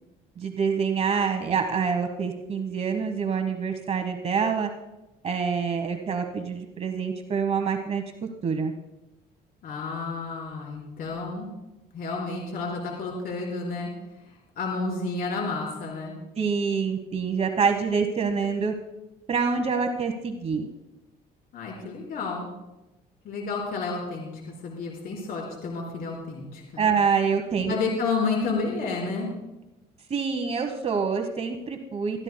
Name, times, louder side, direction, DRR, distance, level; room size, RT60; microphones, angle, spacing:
voice 1, 0.4-4.7 5.2-8.0 8.4-8.7 16.4-18.7 19.3-20.7 26.8-27.7 30.1-32.2, right 5 dB, 40° right, 5 dB, 1.1 m, -26 dB
voice 2, 9.6-11.5 11.9-13.9 14.6-16.2 21.5-22.5 23.2-26.8 27.7-29.3, left 4 dB, 60° left, -2 dB, 4.3 m, -30 dB
24.5 x 14.0 x 2.2 m, 0.98 s
cardioid pair, 110°, 17 cm